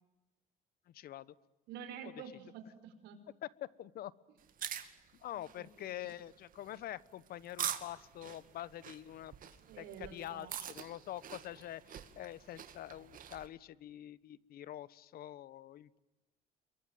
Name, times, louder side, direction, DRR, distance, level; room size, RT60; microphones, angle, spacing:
voice 1, 0.9-1.3 2.0-2.1 3.4-4.1 4.8-4.9 5.2-9.3 9.8-16.0, left 13 dB, 65° left, 20 dB, 1.0 m, -46 dB
voice 2, 1.7-3.2 5.6-6.1 9.6-10.5, right 7 dB, 85° right, 9 dB, 5.1 m, -49 dB
sound 1, 4.4-13.5, right 9 dB, 55° right, 2.4 m, -45 dB
28.5 x 23.0 x 9.1 m, 1.1 s
cardioid pair, 110°, 17 cm